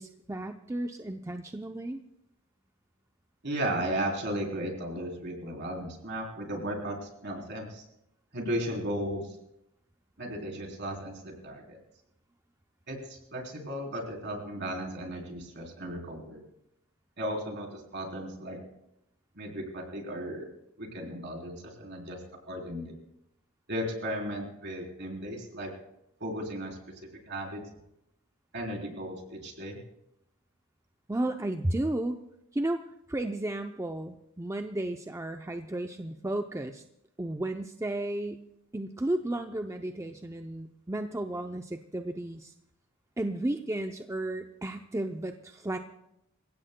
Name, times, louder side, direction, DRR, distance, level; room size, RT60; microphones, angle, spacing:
voice 1, 0.0-2.0 31.1-32.2 32.5-32.8 33.1-36.8 37.2-38.5 38.7-42.5 43.2-45.8, right 1 dB, 15° right, 5 dB, 0.5 m, -33 dB
voice 2, 3.4-7.8 8.3-9.3 10.2-11.8 12.9-16.4 17.2-18.6 19.4-20.5 20.8-22.2 22.5-23.0 23.7-25.7 26.2-26.8 27.3-27.6 28.5-29.8, right 1 dB, 55° right, 1 dB, 3.6 m, -35 dB
27.5 x 16.5 x 2.2 m, 0.81 s
head